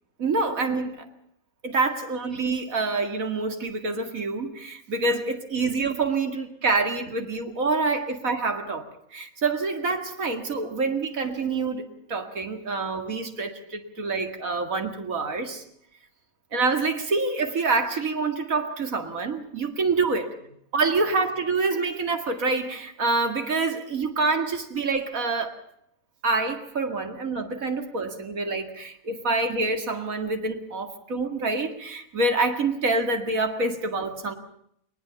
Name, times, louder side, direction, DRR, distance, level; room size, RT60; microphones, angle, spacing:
voice 1, 0.2-1.1 1.6-15.6 16.5-20.3 20.7-25.6 26.2-34.3, right 3 dB, 75° right, 6 dB, 2.6 m, -26 dB
21.0 x 20.0 x 7.1 m, 0.71 s
omnidirectional pair, 1.5 m